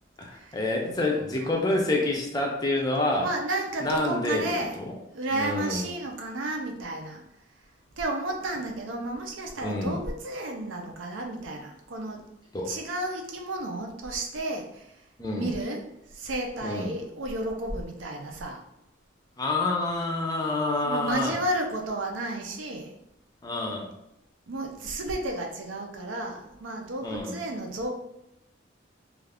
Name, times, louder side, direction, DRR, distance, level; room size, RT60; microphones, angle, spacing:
voice 1, 0.2-3.3 3.8-4.5 4.8-4.9 5.3-5.9 9.6-10.0 12.5-12.7 15.2-15.5 16.6-17.0 19.4-21.4 23.4-23.9 27.0-27.4, left 2 dB, 20° left, 0 dB, 0.4 m, -28 dB
voice 2, 0.8-1.9 3.1-4.8 5.1-7.2 8.0-12.2 12.7-14.9 15.4-15.8 16.1-18.6 20.8-22.9 24.5-27.9, right 1 dB, 85° right, 2 dB, 0.5 m, -32 dB
2.4 x 2.4 x 3.4 m, 0.85 s
head